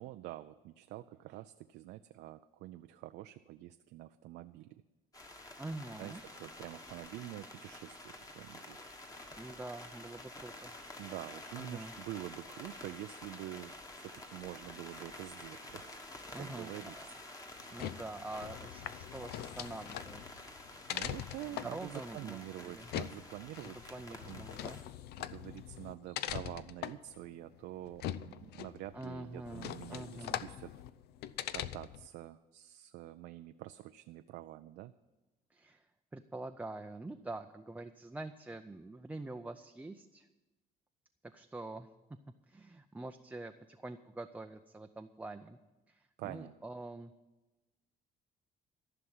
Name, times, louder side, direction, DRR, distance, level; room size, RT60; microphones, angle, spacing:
voice 1, 0.0-4.8 6.0-8.9 11.0-16.9 20.9-24.5 25.2-30.7 31.5-34.9 46.2-46.5, right 15 dB, 85° right, 9 dB, 0.5 m, -47 dB
sound 1, 5.1-24.8, left 2 dB, 20° left, 1.5 m, -50 dB
voice 2, 5.6-6.2 9.3-10.7 11.6-11.9 16.3-17.0 17.7-20.4 21.4-22.9 23.6-24.8 28.9-30.4 35.5-40.3 41.2-41.9 42.5-45.6 45.9-47.1, right 2 dB, 10° right, 5 dB, 0.5 m, -45 dB
sound 2, 17.6-32.1, left 12 dB, 75° left, 0.5 m, -43 dB
14.0 x 5.9 x 9.6 m, 1.1 s
cardioid pair, 110°, 17 cm